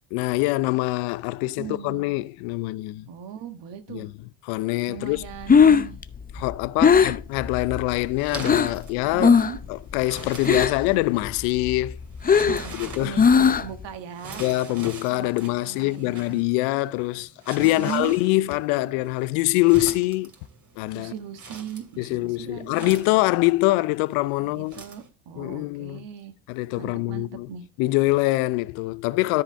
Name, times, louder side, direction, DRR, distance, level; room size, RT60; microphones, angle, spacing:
voice 1, 0.1-3.0 3.9-4.1 4.5-5.2 6.3-9.3 9.7-12.0 12.8-13.2 14.4-20.3 20.8-21.1 22.0-24.8 25.4-26.1 26.5-27.5 27.8-29.4, left 20 dB, 80° left, 0.6 m, -24 dB
voice 2, 1.5-2.0 3.1-4.1 4.9-6.0 6.4-6.5 6.8-7.0 9.0-9.6 12.4-12.7 13.0-14.4 15.1-16.4 17.6-18.1 20.9-23.0 24.4-26.3 26.8-27.7, right 8 dB, 65° right, 1.6 m, -38 dB
Breathing, 5.2-8.8 9.2-9.7 9.9-10.9 11.3-13.8, left 6 dB, 20° left, 0.5 m, -19 dB
sound 1, 7.3-25.1, right 3 dB, 35° right, 2.7 m, -43 dB
13.5 x 4.9 x 3.4 m
hypercardioid pair, 65°, 46 cm